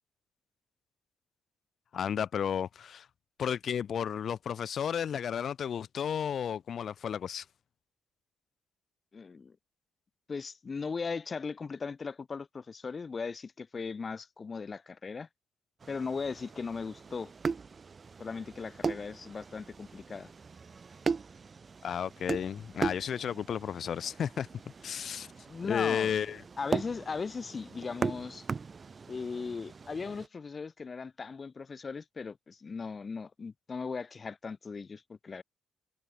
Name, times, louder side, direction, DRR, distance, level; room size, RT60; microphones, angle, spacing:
voice 1, 1.9-3.1 3.4-7.5 21.8-24.5 24.8-25.3 25.7-26.4, left 8 dB, 55° left, 2.1 m, -33 dB
voice 2, 9.1-9.6 10.3-15.3 15.9-17.3 18.2-20.3 25.5-26.1 26.6-28.5 29.1-35.4, left 5 dB, 35° left, 3.1 m, -38 dB
sound 1, 15.8-30.3, right 5 dB, 35° right, 2.2 m, -39 dB
cardioid pair, 90°, 0 cm